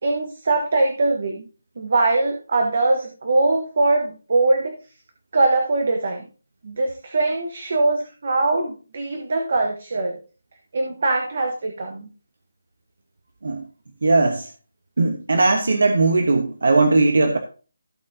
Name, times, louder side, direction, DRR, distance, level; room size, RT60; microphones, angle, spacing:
voice 1, 0.0-1.5 1.8-4.8 5.3-6.2 6.6-10.2 10.7-12.1, right 2 dB, 40° right, 4 dB, 1.2 m, -22 dB
voice 2, 14.0-14.5 15.0-17.4, right 3 dB, 60° right, 5 dB, 1.3 m, -18 dB
15.5 x 5.7 x 2.8 m, 0.36 s
hypercardioid pair, 180°, 0 cm